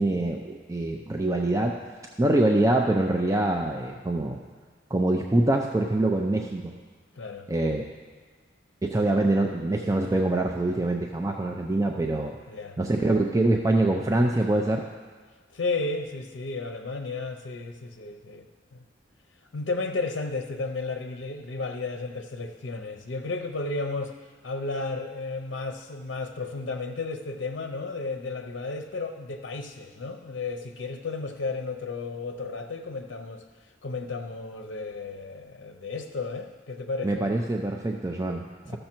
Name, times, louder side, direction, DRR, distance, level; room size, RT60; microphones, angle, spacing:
voice 1, 0.0-1.8 2.2-4.4 4.9-6.7 7.5-7.9 8.8-12.4 12.8-14.8 37.0-38.8, right 2 dB, 15° right, 1 dB, 0.5 m, -24 dB
voice 2, 7.1-7.5 12.5-12.8 15.5-18.5 18.7-18.8 19.5-37.2, left 3 dB, 75° left, 5 dB, 0.6 m, -33 dB
13.5 x 6.6 x 4.5 m, 1.5 s
head